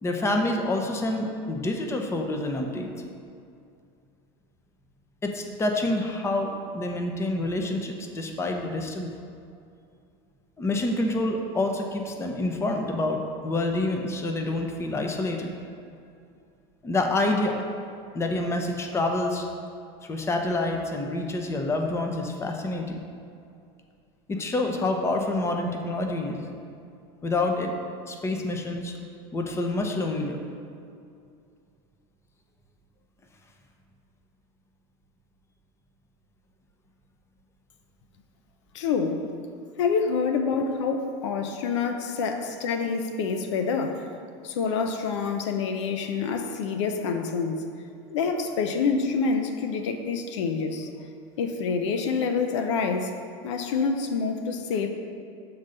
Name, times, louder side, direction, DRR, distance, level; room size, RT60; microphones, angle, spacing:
voice 1, 0.0-2.9 5.2-9.1 10.6-15.5 16.8-17.6 18.1-19.5 20.0-23.0 24.3-26.5 27.2-27.8 28.1-29.0 29.3-30.4 42.3-42.4, left 2 dB, 20° left, 3 dB, 0.8 m, -27 dB
voice 2, 38.7-39.2 39.8-44.1 44.4-47.7 48.1-50.9 51.4-53.1 53.4-54.9, left 5 dB, 85° left, 6 dB, 0.7 m, -27 dB
7.1 x 3.9 x 6.6 m, 2.4 s
supercardioid pair, 115°, 15 cm